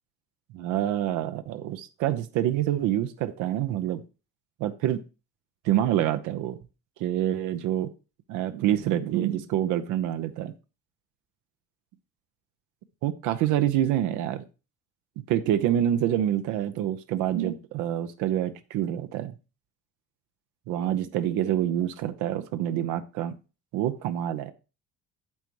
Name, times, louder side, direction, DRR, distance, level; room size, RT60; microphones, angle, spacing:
voice 1, 0.5-4.0 4.6-5.0 5.6-6.6 7.0-7.9 8.3-10.5 13.0-14.4 15.3-19.3 20.7-23.3 23.7-24.5, right 11 dB, 85° right, 10 dB, 0.8 m, -26 dB
8.9 x 7.7 x 3.1 m, 0.31 s
cardioid pair, 130°, 30 cm